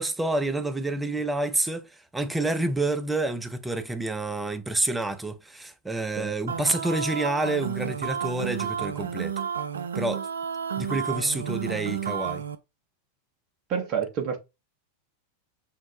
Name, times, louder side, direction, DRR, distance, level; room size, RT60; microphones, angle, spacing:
voice 1, 0.0-9.3 9.9-10.2 10.8-12.4, right 2 dB, 10° right, 0.5 m, -28 dB
sound 1, 6.5-12.6, right 7 dB, 70° right, 0.3 m, -31 dB
voice 2, 13.7-14.4, right 7 dB, 40° right, 1.0 m, -28 dB
5.6 x 2.0 x 3.1 m
figure-of-eight pair, 90°, 0 cm